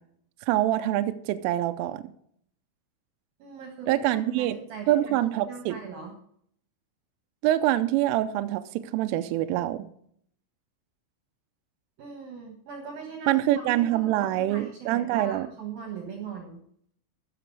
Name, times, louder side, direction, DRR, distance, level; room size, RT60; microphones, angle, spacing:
voice 1, 0.5-2.0 3.9-4.6 4.9-5.8 7.4-9.8 13.3-15.5, right 14 dB, 80° right, 9 dB, 3.0 m, -25 dB
voice 2, 3.4-6.2 12.0-16.6, right 6 dB, 65° right, 3 dB, 2.5 m, -40 dB
15.0 x 6.8 x 4.7 m, 0.66 s
omnidirectional pair, 5.9 m